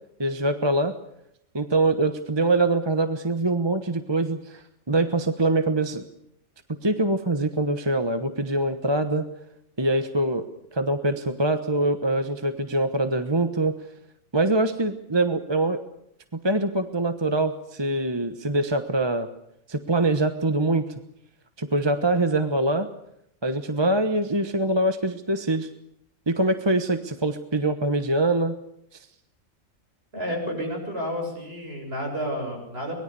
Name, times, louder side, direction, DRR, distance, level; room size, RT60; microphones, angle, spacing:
voice 1, 0.2-0.9 1.5-6.0 6.8-9.3 9.8-13.8 14.3-15.8 16.4-19.3 19.7-20.8 21.6-22.9 23.4-25.7 26.3-28.5, right 2 dB, 20° right, 9 dB, 1.1 m, -24 dB
voice 2, 30.1-33.0, equal, 45° right, 1 dB, 7.7 m, -30 dB
24.5 x 20.5 x 6.9 m, 0.76 s
omnidirectional pair, 1.4 m